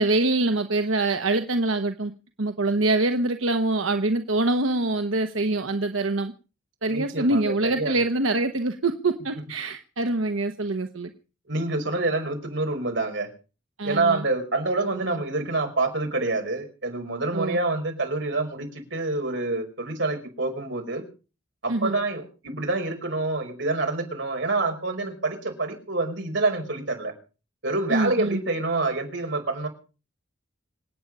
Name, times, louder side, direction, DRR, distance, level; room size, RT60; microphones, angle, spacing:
voice 1, 0.0-2.1 2.4-6.3 6.8-11.1 13.8-14.2 17.3-17.6 21.7-21.9 27.9-28.4, right 2 dB, 90° right, 7 dB, 1.2 m, -24 dB
voice 2, 6.8-8.0 11.5-13.3 13.8-21.0 21.6-27.1 27.6-29.7, right 2 dB, 65° right, 3 dB, 5.4 m, -27 dB
26.5 x 9.1 x 5.5 m, 0.36 s
head